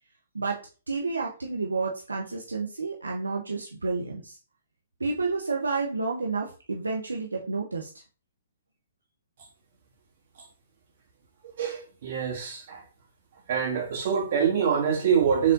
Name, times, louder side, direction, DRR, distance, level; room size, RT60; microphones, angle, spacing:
voice 1, 0.9-4.4 5.0-7.9, right 4 dB, 85° right, 0.7 m, -30 dB
voice 2, 11.6-12.8 13.5-15.5, right 7 dB, 55° right, 1.8 m, -25 dB
4.9 x 3.6 x 2.4 m
figure-of-eight pair, 125°, 0 cm